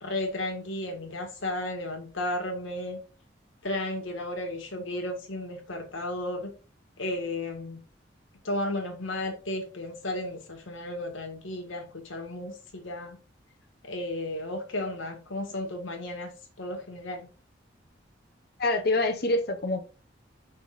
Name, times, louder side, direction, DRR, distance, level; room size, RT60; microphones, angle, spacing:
voice 1, 0.0-3.0 3.6-6.5 7.0-7.8 8.4-13.2 13.8-16.3 16.6-17.3, left 1 dB, 80° left, 1.7 m, -34 dB
voice 2, 18.6-19.8, left 2 dB, 50° left, 0.9 m, -25 dB
5.5 x 3.7 x 4.9 m
head